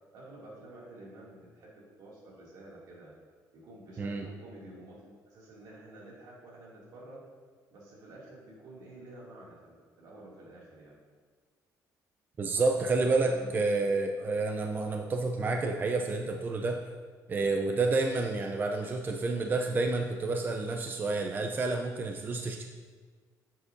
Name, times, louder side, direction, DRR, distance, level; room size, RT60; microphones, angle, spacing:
voice 1, 0.1-3.1 3.5-7.2 7.7-10.9 12.5-13.6 14.2-14.3, right 1 dB, 75° right, -4 dB, 2.4 m, -50 dB
voice 2, 12.4-16.8 17.3-22.7, right 3 dB, 30° right, 3 dB, 0.5 m, -29 dB
10.0 x 7.4 x 2.6 m, 1.5 s
cardioid pair, 130°, 7 cm